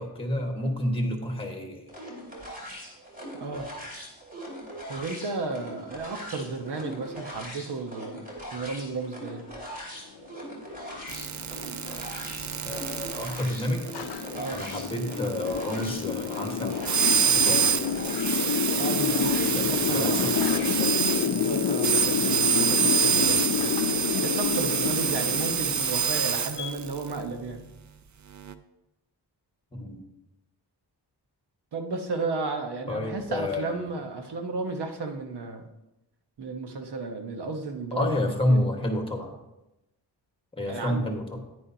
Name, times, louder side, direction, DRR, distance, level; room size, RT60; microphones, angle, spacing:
voice 1, 0.0-1.9 12.6-14.0 14.5-16.9 17.2-17.8 19.5-21.0 29.7-30.0 32.9-33.8 37.9-39.4 40.6-41.4, left 1 dB, 15° left, 3 dB, 1.4 m, -30 dB
sound 1, 1.9-20.9, equal, 20° right, 2.6 m, -41 dB
voice 2, 4.9-9.4 14.3-14.6 18.8-20.3 21.2-23.7 24.2-27.6 31.7-35.7 36.4-38.2 38.5-38.7 40.6-41.0, right 3 dB, 70° right, 5 dB, 1.2 m, -33 dB
sound 2, 10.3-26.7, left 8 dB, 65° left, 0.6 m, -29 dB
sound 3, 11.1-27.0 28.5-28.6, right 7 dB, 45° right, 0.5 m, -27 dB
10.0 x 9.6 x 2.8 m, 0.94 s
wide cardioid pair, 130°, 42 cm